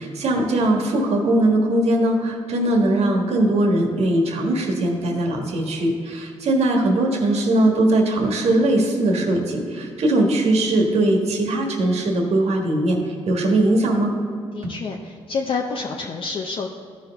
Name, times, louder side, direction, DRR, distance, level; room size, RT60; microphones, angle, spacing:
voice 1, 0.0-14.2 14.6-14.7, right 1 dB, 65° right, 2 dB, 1.5 m, -20 dB
voice 2, 14.5-16.7, left 4 dB, 50° left, 0 dB, 0.7 m, -28 dB
13.5 x 5.2 x 3.5 m, 2.4 s
cardioid pair, 70°, 11 cm